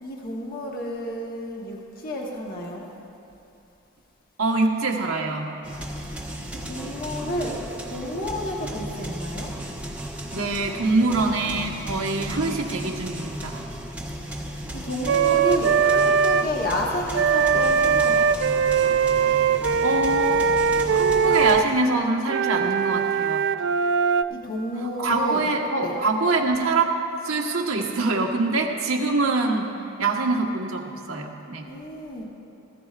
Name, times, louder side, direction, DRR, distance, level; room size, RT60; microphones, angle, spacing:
voice 1, 0.0-2.9 6.7-9.5 14.7-18.3 24.3-25.4 25.8-26.0 31.7-32.2, left 1 dB, 45° left, -2 dB, 1.2 m, -30 dB
voice 2, 4.4-5.5 7.3-7.6 10.3-13.6 19.8-20.5 20.9-23.5 25.0-29.7 30.0-31.7, right 3 dB, 80° right, 0 dB, 1.3 m, -24 dB
sound 1, 5.6-21.6, equal, 5° right, 1.0 m, -35 dB
Wind instrument woodwind instrument, 15.1-16.5 17.1-21.7 22.3-24.2, right 6 dB, 55° right, 0.3 m, -21 dB
18.5 x 14.5 x 2.5 m, 2.8 s
head